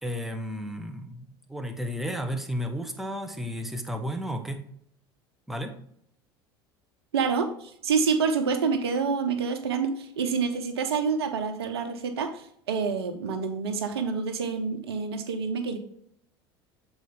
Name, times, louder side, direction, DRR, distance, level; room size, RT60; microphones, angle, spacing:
voice 1, 0.0-4.7 5.5-5.8, equal, ahead, 5 dB, 1.1 m, -33 dB
voice 2, 7.1-15.8, right 5 dB, 85° right, 7 dB, 0.9 m, -27 dB
7.7 x 4.4 x 3.6 m, 0.67 s
hypercardioid pair, 80°, 13 cm